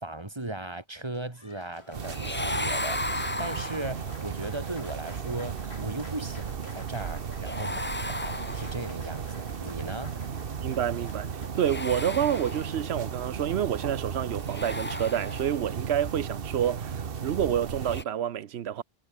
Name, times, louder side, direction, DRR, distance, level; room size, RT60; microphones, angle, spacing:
voice 1, 0.0-3.0 3.4-10.2, right 2 dB, 25° right, 2.0 m, -37 dB
Applause, 1.0-15.7, left 3 dB, 90° left, 2.8 m, -53 dB
sound 1, 1.9-18.0, right 6 dB, 65° right, 1.3 m, -35 dB
sound 2, 2.0-4.2 7.4-9.1 11.5-13.0 14.4-15.8 17.8-18.0, left 2 dB, 10° left, 0.8 m, -35 dB
voice 2, 10.6-18.8, right 10 dB, 90° right, 1.0 m, -28 dB
omnidirectional pair, 1.0 m